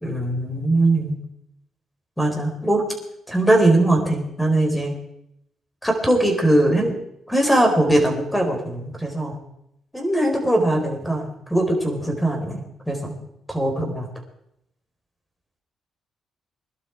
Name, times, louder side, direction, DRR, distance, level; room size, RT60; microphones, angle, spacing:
voice 1, 0.0-1.1 2.2-2.9 3.3-4.9 5.8-6.9 7.3-9.4 9.9-13.2 13.5-14.1, right 1 dB, 5° left, 3 dB, 4.4 m, -20 dB
20.5 x 12.0 x 4.7 m, 0.78 s
cardioid pair, 90°, 0 cm